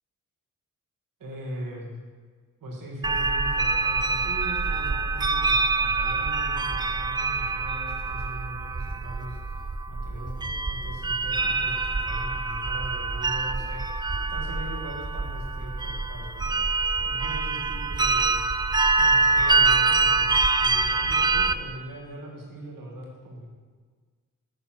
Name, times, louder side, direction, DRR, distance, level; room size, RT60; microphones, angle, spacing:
voice 1, 1.2-2.0 2.6-9.4 9.9-16.7 17.0-18.5 19.0-23.5, equal, 80° right, -1 dB, 1.9 m, -40 dB
sound 1, 3.0-21.5, right 3 dB, 15° right, 0.3 m, -25 dB
9.5 x 4.0 x 6.1 m, 1.5 s
cardioid pair, 60°, 33 cm